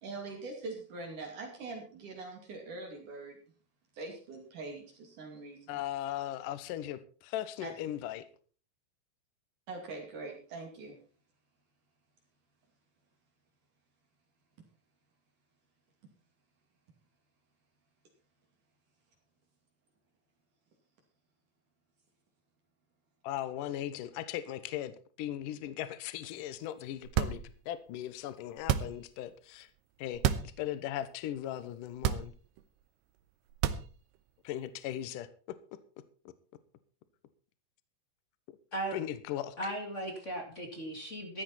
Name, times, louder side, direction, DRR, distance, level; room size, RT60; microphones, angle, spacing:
voice 1, 0.0-3.4 3.9-5.8 7.6-7.7 9.7-11.0, right 3 dB, 55° right, 1 dB, 3.7 m, -43 dB
voice 2, 5.7-8.2 23.2-24.9 25.2-29.7 30.0-32.3 34.4-35.6 38.9-39.6, left 12 dB, 70° left, 14 dB, 2.3 m, -38 dB
sound 1, 27.0-27.7 28.6-29.2 30.1-30.6 31.0-31.1 31.9-32.6 33.5-34.2, right 10 dB, 85° right, 2.8 m, -30 dB
voice 3, 39.6-41.4, right 1 dB, 25° left, 3 dB, 1.9 m, -37 dB
14.5 x 13.0 x 4.3 m, 0.40 s
omnidirectional pair, 4.5 m